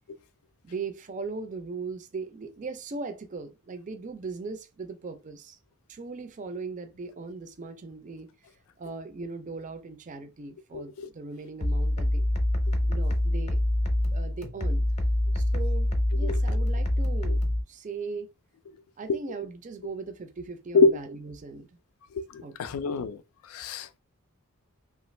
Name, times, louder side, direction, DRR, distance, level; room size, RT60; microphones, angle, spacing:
voice 1, 0.6-5.6 5.9-8.3 8.8-12.3 12.9-13.6 14.1-14.8 15.3-17.4 17.7-18.3 19.0-21.7 22.4-22.9, right 4 dB, 35° right, 0.4 m, -39 dB
voice 2, 10.7-11.1 16.2-16.3 20.7-21.0 22.1-23.2 23.5-24.0, left 4 dB, 85° left, 0.4 m, -25 dB
sound 1, 11.6-17.6, left 1 dB, 30° left, 0.6 m, -25 dB
2.9 x 2.4 x 3.1 m
head